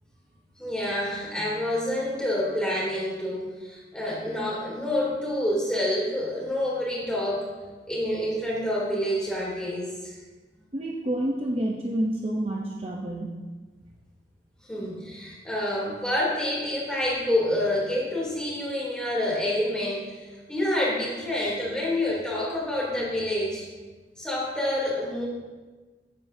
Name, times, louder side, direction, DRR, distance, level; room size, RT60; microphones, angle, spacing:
voice 1, 0.6-7.5 7.9-10.1 14.7-23.6 24.2-25.3, left 1 dB, 5° left, -5 dB, 2.9 m, -28 dB
voice 2, 10.7-13.3, right 1 dB, 30° right, -1 dB, 0.7 m, -28 dB
14.5 x 9.1 x 2.7 m, 1.3 s
head